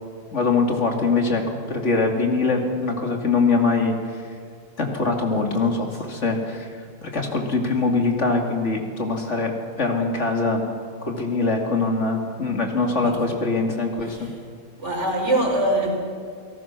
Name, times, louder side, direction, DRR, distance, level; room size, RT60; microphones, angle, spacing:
voice 1, 0.3-1.4 1.7-3.9 4.8-6.7 7.0-10.7 11.1-14.3, left 3 dB, 65° left, 2 dB, 2.8 m, -23 dB
voice 2, 13.0-13.3 14.1-14.3 14.8-16.0, right 1 dB, 60° right, 0 dB, 4.9 m, -23 dB
30.0 x 18.0 x 6.1 m, 2.1 s
omnidirectional pair, 1.3 m